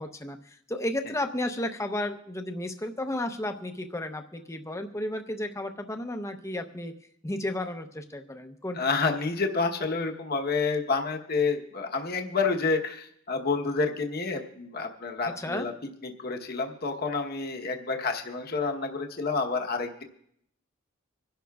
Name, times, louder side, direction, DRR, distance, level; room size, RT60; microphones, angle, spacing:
voice 1, 0.0-6.9 7.2-8.8 15.4-15.7, left 1 dB, 15° left, 6 dB, 0.7 m, -33 dB
voice 2, 8.7-15.7 16.0-20.0, left 4 dB, 45° left, 3 dB, 1.0 m, -29 dB
26.0 x 11.5 x 2.3 m, 0.71 s
head